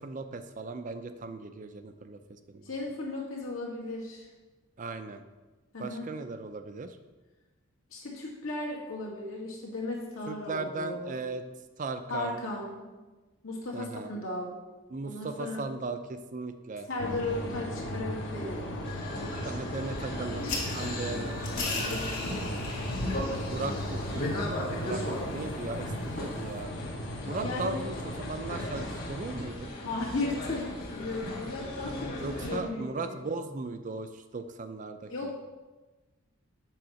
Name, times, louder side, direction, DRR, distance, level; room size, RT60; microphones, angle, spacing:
voice 1, 0.0-2.7 4.8-5.2 5.8-7.0 10.3-11.4 11.8-12.4 13.7-14.1 14.9-16.9 19.4-21.5 23.5-24.3 24.8-25.0 25.3-26.8 27.3-29.7 32.2-35.3, right 3 dB, 35° right, 8 dB, 0.4 m, -37 dB
voice 2, 2.6-4.3 5.7-6.0 7.9-11.2 12.1-12.9 13.4-14.6 15.0-15.7 16.9-18.7 19.6-19.8 21.8-22.6 27.4-27.8 29.8-32.1 32.4-33.2 35.1-35.4, left 2 dB, 75° left, -3 dB, 2.0 m, -36 dB
sound 1, 17.0-29.4, equal, 60° left, 1.1 m, -36 dB
sound 2, 18.8-32.6, left 1 dB, 40° left, 1.6 m, -38 dB
sound 3, 20.4-26.6, left 3 dB, 90° left, 2.3 m, -40 dB
7.7 x 3.9 x 6.2 m, 1.2 s
head